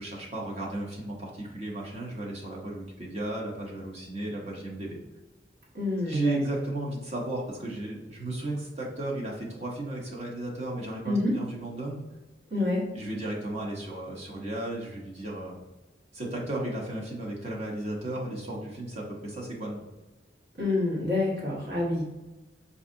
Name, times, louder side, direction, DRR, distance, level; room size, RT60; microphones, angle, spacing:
voice 1, 0.0-5.0 6.0-12.0 12.9-15.6 16.1-19.8, right 1 dB, 35° right, -2 dB, 0.9 m, -34 dB
voice 2, 5.7-6.4 11.0-11.3 12.5-12.8 20.6-22.0, left 2 dB, 55° right, -5 dB, 1.3 m, -27 dB
4.8 x 2.7 x 2.5 m, 1.1 s
head